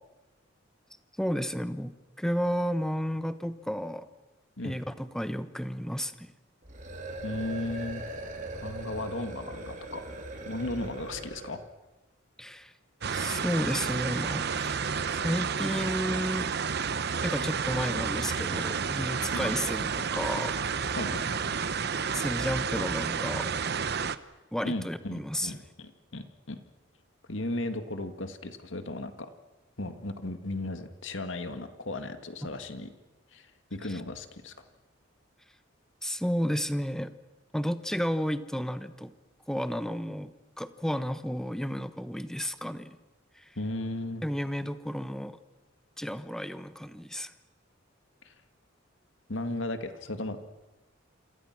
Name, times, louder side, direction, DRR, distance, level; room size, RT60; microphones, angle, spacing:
voice 1, 1.2-4.1 4.6-6.3 12.4-12.7 13.1-16.5 17.2-20.5 20.8-21.0 22.1-23.5 24.5-25.6 33.9-34.0 36.0-37.1 37.5-39.1 39.5-43.0 43.4-43.5 44.2-45.4 46.0-47.3, equal, 5° left, 11 dB, 1.1 m, -32 dB
sound 1, 6.6-11.6, right 1 dB, 40° right, 4.0 m, -40 dB
voice 2, 7.2-8.0 8.6-10.0 10.5-11.6 19.3-19.5 21.0-21.6 24.6-26.6 27.3-29.3 29.8-32.9 33.3-34.5 43.6-44.2 48.2-48.3 49.3-50.4, left 2 dB, 70° left, 8 dB, 2.0 m, -36 dB
sound 2, 13.0-24.2, right 6 dB, 55° right, 0.9 m, -31 dB
28.0 x 26.5 x 6.1 m, 1.1 s
head